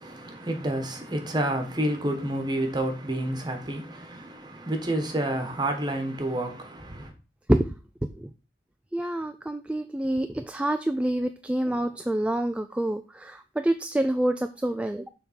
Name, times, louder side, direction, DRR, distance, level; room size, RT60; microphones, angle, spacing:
voice 1, 0.0-7.1, right 1 dB, 25° right, 1.3 m, -29 dB
voice 2, 8.9-15.1, right 1 dB, 5° right, 0.3 m, -27 dB
6.8 x 3.6 x 5.7 m
head